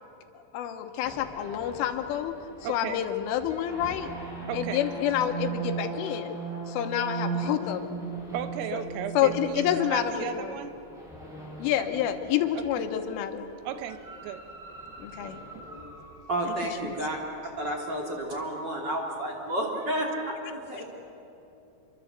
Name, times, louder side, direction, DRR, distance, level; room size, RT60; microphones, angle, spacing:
voice 1, 0.5-2.4 2.7-4.1 4.5-6.4 6.7-8.0 8.7-8.8 9.2-10.5 11.6-13.5 15.0-15.4 16.5-16.6 16.8-17.0, left 10 dB, 75° left, 7 dB, 3.5 m, -28 dB
sound 1, 1.0-12.8 13.7-16.3, right 4 dB, ahead, 6.3 m, -38 dB
voice 2, 2.6-3.0 4.5-4.8 8.3-10.7 12.6-12.9 13.7-14.4 15.6-15.7, right 9 dB, 80° right, 10 dB, 3.7 m, -35 dB
voice 3, 16.3-17.2 17.4-20.8, right 1 dB, 30° right, 0 dB, 2.3 m, -31 dB
27.0 x 23.5 x 8.1 m, 3.0 s
omnidirectional pair, 5.9 m